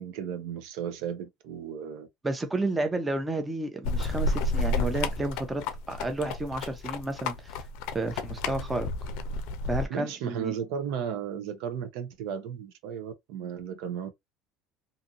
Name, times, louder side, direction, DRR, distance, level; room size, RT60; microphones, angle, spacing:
voice 1, 0.0-2.1 9.9-14.1, right 8 dB, 75° right, 0.7 m, -35 dB
voice 2, 2.2-7.6 7.9-8.9 9.7-10.5, right 2 dB, 15° right, 0.7 m, -31 dB
sound 1, 3.8-9.9, left 2 dB, 75° left, 0.5 m, -31 dB
2.6 x 2.5 x 2.7 m
cardioid pair, 125°, 0 cm